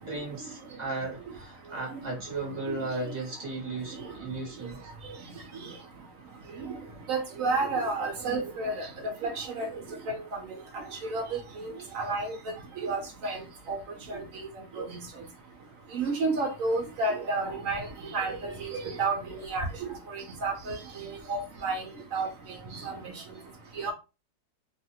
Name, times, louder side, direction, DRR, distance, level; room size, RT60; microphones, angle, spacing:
voice 1, 0.0-4.9, right 3 dB, 30° right, 0.9 m, -36 dB
voice 2, 7.1-9.7 10.3-10.4 11.0-11.2 11.6-12.4 12.8-13.4 13.7-13.8 14.1-14.5 14.8-14.9 15.9-17.8 18.1-19.7 20.1-21.8 22.1-22.3 22.7-23.1 23.8-23.9, right 3 dB, 70° right, 0.8 m, -31 dB
2.7 x 2.5 x 2.7 m
omnidirectional pair, 2.0 m